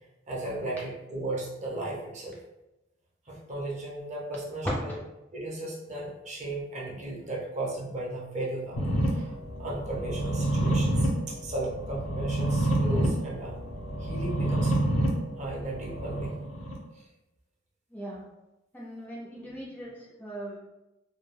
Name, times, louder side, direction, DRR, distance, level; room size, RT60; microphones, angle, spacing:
voice 1, 0.3-2.4 3.3-4.7 5.3-13.6 14.0-14.7 15.4-16.4 16.9-17.1, right 2 dB, 35° right, -4 dB, 0.6 m, -35 dB
sound 1, 8.8-16.7, right 1 dB, 80° left, 0.6 m, -28 dB
voice 2, 17.9-18.2 18.7-20.6, right 1 dB, 10° left, -5 dB, 0.4 m, -40 dB
2.2 x 2.2 x 3.1 m, 0.98 s
head